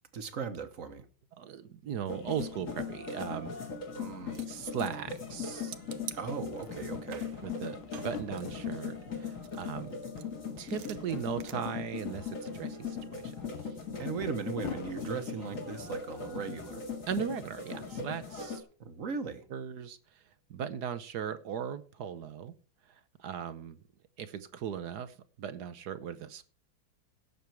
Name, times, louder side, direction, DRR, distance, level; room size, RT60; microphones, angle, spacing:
voice 1, 0.1-1.1 3.9-4.4 6.1-7.3 14.0-16.8 18.8-19.5, right 5 dB, 45° right, 1.5 m, -38 dB
voice 2, 1.4-3.7 4.5-5.8 7.4-10.0 10.6-13.8 17.1-18.6 19.5-20.2 20.5-22.5 22.9-23.8 24.2-26.4, right 8 dB, 60° right, 1.3 m, -38 dB
sound 1, 2.1-18.6, left 5 dB, 40° left, 2.4 m, -39 dB
sound 2, 4.3-5.4 5.7-6.9 7.1-9.1 9.4-11.5, right 12 dB, 80° right, 1.6 m, -48 dB
sound 3, 4.6-4.7 4.9-6.1 6.4-8.6 9.0-9.8 10.0-10.9 11.1-11.3 11.8-15.1, left 8 dB, 75° left, 1.8 m, -46 dB
17.5 x 6.8 x 4.6 m
omnidirectional pair, 2.2 m